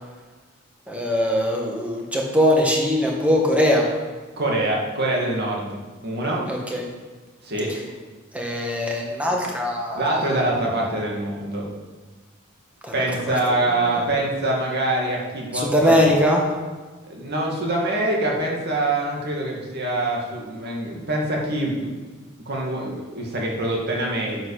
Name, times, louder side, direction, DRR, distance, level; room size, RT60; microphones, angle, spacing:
voice 1, 0.9-3.9 6.5-6.8 8.3-10.0 12.8-13.1 15.5-16.5, equal, 5° right, -1 dB, 1.7 m, -21 dB
voice 2, 4.4-5.8 6.0-6.4 7.4-7.7 9.9-11.7 12.9-16.0 17.1-21.9 22.5-24.5, right 1 dB, 55° right, -2 dB, 2.3 m, -24 dB
11.0 x 7.9 x 5.0 m, 1.3 s
head